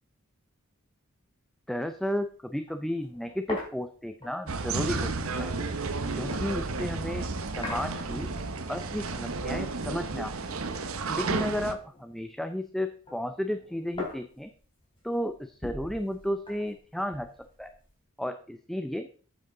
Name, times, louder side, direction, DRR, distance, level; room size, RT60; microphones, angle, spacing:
voice 1, 1.7-5.1 5.4-5.5 6.1-7.3 7.6-8.3 8.7-10.3 11.1-14.5 15.0-17.3 17.6-17.7 18.2-19.1, equal, ahead, 8 dB, 0.5 m, -33 dB
sound 1, 1.8-2.0 2.3-2.4 2.7-7.0 7.6-8.8 9.1-10.5 10.7-12.5 12.8-18.0, left 2 dB, 25° left, 3.7 m, -43 dB
sound 2, 4.5-11.7, right 3 dB, 75° right, 0.9 m, -32 dB
9.2 x 7.9 x 3.8 m, 0.43 s
head